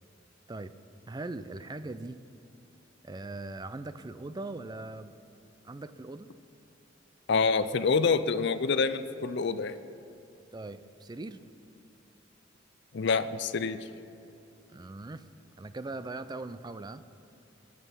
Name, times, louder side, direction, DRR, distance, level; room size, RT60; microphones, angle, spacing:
voice 1, 1.1-2.2 3.0-5.1 5.6-6.3 10.5-11.4 14.7-15.2 15.6-17.0, right 2 dB, 20° right, 13 dB, 0.4 m, -40 dB
voice 2, 7.3-9.8 12.9-13.8, left 4 dB, 60° left, 12 dB, 0.5 m, -27 dB
21.5 x 7.4 x 5.8 m, 2.7 s
head